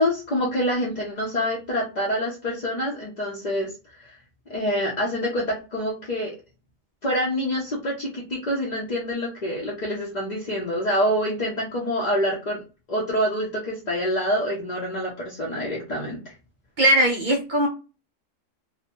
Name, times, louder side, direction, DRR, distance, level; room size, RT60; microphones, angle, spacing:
voice 1, 0.0-3.7 4.0-4.1 4.5-6.3 7.0-12.6 12.9-16.2, equal, 45° left, -4 dB, 0.6 m, -26 dB
voice 2, 16.8-17.7, right 1 dB, 65° right, 0 dB, 0.5 m, -19 dB
2.7 x 2.1 x 2.8 m, 0.32 s
omnidirectional pair, 1.4 m